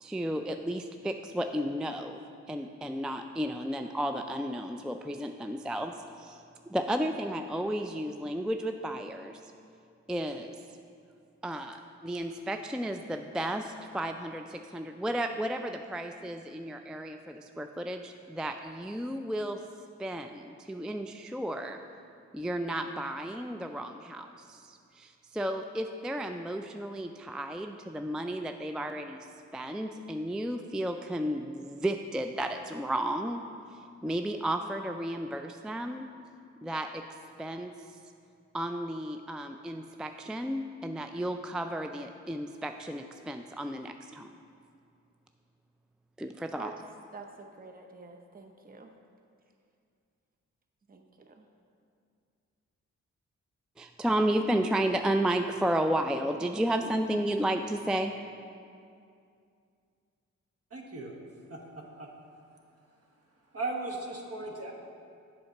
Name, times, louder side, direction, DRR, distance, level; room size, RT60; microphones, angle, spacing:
voice 1, 0.0-2.2 2.5-9.4 10.1-10.6 11.4-19.6 20.0-21.8 22.3-29.2 29.5-33.4 33.7-36.1 36.6-38.0 38.5-44.3 46.2-46.7 54.0-58.1, right 1 dB, 5° right, 6 dB, 0.3 m, -33 dB
voice 2, 47.1-48.9 50.9-51.5, right 4 dB, 30° right, 4 dB, 0.8 m, -48 dB
voice 3, 60.7-61.1 61.5-62.1 63.5-64.7, right 2 dB, 50° right, 1 dB, 1.3 m, -37 dB
7.7 x 4.3 x 5.8 m, 2.4 s
supercardioid pair, 45°, 31 cm